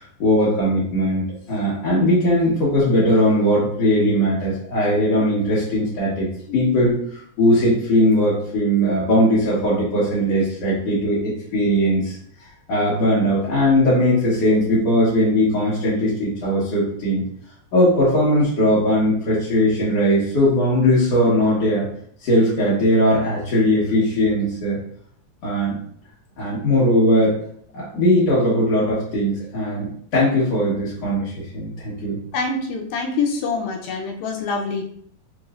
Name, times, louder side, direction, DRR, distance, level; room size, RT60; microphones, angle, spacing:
voice 1, 0.0-6.3 6.5-12.2 12.7-17.2 17.7-21.9 22.2-24.8 25.4-25.8 26.4-27.3 27.7-29.9 30.1-32.2, equal, 60° left, -9 dB, 1.7 m, -19 dB
voice 2, 32.3-34.8, left 4 dB, 80° left, 2 dB, 2.3 m, -25 dB
6.1 x 3.1 x 2.4 m, 0.64 s
omnidirectional pair, 4.3 m